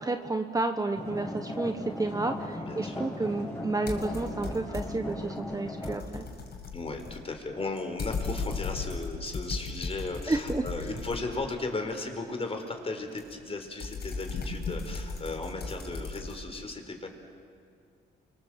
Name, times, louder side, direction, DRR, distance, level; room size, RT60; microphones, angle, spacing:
voice 1, 0.0-6.2 10.3-10.6, right 2 dB, 20° right, 6 dB, 1.3 m, -31 dB
sound 1, 1.0-6.0, left 1 dB, 10° left, 6.1 m, -37 dB
voice 2, 2.6-2.9 6.7-17.1, left 3 dB, 30° left, 4 dB, 4.6 m, -36 dB
sound 2, 3.9-5.1 5.5-11.7 13.2-16.4, left 4 dB, 55° left, 5.5 m, -37 dB
30.0 x 25.0 x 7.7 m, 2.3 s
cardioid pair, 90°, 20 cm